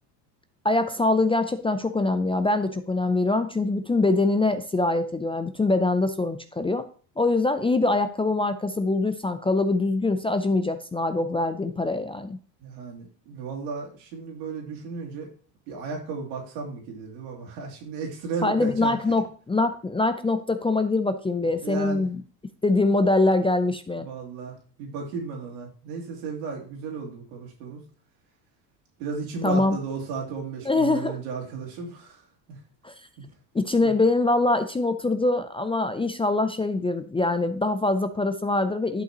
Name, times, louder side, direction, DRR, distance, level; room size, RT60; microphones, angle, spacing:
voice 1, 0.6-6.9 7.2-12.4 18.4-22.2 22.6-24.1 29.4-29.8 30.6-31.2 32.8-32.9 33.5-39.0, left 2 dB, 10° left, 9 dB, 0.5 m, -23 dB
voice 2, 12.6-15.3 15.7-18.9 21.6-22.0 24.0-27.8 29.0-32.2 32.5-32.6 33.8-33.9, right 4 dB, 85° right, 0 dB, 2.8 m, -34 dB
10.5 x 5.7 x 3.0 m, 0.42 s
supercardioid pair, 90°, 50 cm